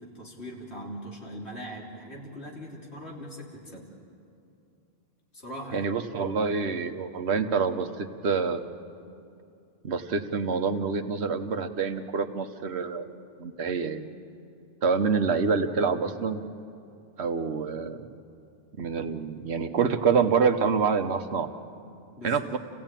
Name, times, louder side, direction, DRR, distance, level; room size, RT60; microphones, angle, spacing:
voice 1, 0.0-3.9 5.3-5.9 16.0-16.2 22.2-22.6, equal, 85° left, -2 dB, 3.6 m, -41 dB
voice 2, 5.7-8.6 9.8-13.1 13.4-14.1 14.8-16.4 17.2-18.1 18.8-21.5 22.2-22.6, right 5 dB, 85° right, 8 dB, 1.3 m, -26 dB
28.0 x 16.0 x 9.0 m, 2.6 s
omnidirectional pair, 1.1 m